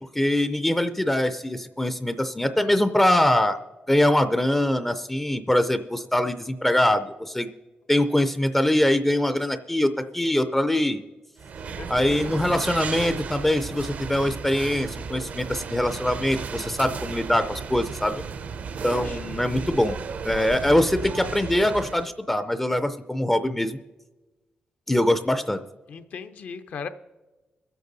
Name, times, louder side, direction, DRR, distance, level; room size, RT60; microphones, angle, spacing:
voice 1, 0.0-3.6 3.9-7.5 7.9-11.0 11.9-18.2 18.8-19.9 20.2-23.8 24.9-25.6, left 1 dB, 10° left, 10 dB, 0.4 m, -23 dB
sound 1, 11.4-22.1, right 5 dB, 55° right, 0.5 m, -34 dB
voice 2, 11.8-12.2 18.9-19.2 25.9-26.9, left 6 dB, 60° left, 8 dB, 0.7 m, -36 dB
23.5 x 8.1 x 4.0 m, 1.2 s
wide cardioid pair, 175°, 3 cm